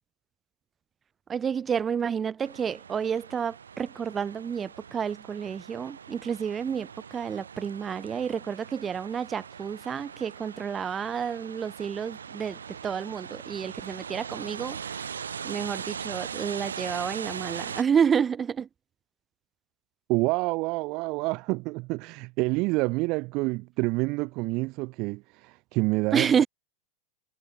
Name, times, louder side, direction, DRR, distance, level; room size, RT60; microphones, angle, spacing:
voice 1, 1.3-15.1 15.4-18.7 26.1-26.5, right 7 dB, 25° right, 5.6 m, -29 dB
sound 1, 2.4-17.8, right 7 dB, 85° right, 3.1 m, -40 dB
voice 2, 20.1-26.4, right 25 dB, 50° right, 1.2 m, -28 dB
hypercardioid pair, 95°, 0 cm